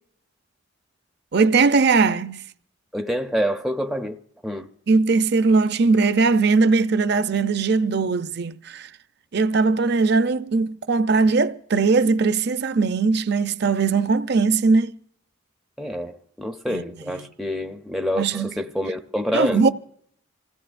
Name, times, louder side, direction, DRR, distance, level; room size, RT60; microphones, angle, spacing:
voice 1, 1.3-2.4 4.9-8.9 9.3-15.0 16.7-17.3 18.2-18.5 19.3-19.7, right 4 dB, 55° right, 0.5 m, -20 dB
voice 2, 2.9-4.2 4.4-4.7 15.8-19.6, equal, ahead, 0.5 m, -27 dB
27.5 x 16.0 x 2.5 m
head